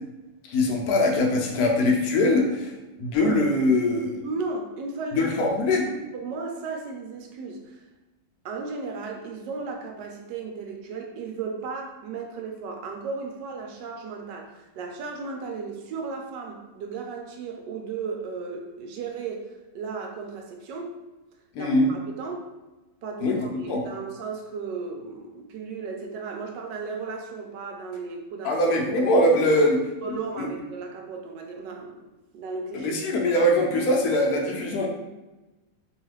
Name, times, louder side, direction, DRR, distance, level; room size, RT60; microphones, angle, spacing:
voice 1, 0.5-2.7 3.0-4.3 5.1-5.9 21.5-21.9 23.2-23.4 23.7-23.8 28.4-29.8 30.4-30.5 32.7-34.9, left 1 dB, 70° left, 0 dB, 1.0 m, -22 dB
voice 2, 4.2-5.4 5.7-7.8 8.4-21.0 21.6-22.5 23.0-28.6 29.0-29.7 30.0-32.0 32.3-32.9, right 4 dB, 85° right, 2 dB, 1.2 m, -35 dB
3.0 x 2.3 x 3.1 m, 1.1 s
omnidirectional pair, 1.8 m